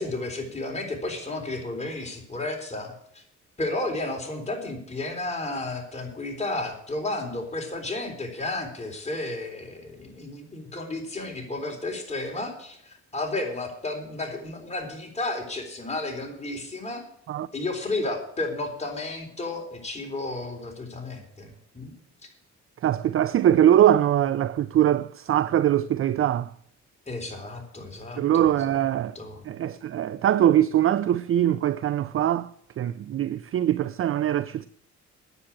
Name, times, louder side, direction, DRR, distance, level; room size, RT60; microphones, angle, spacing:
voice 1, 0.0-3.2 3.6-17.0 17.5-21.9 27.1-29.4, left 2 dB, 20° left, 3.7 m, -32 dB
voice 2, 22.8-26.5 28.2-29.1 29.5-32.5 32.8-34.7, right 11 dB, 45° right, 0.5 m, -22 dB
9.8 x 7.9 x 8.7 m
cardioid pair, 90°, 30 cm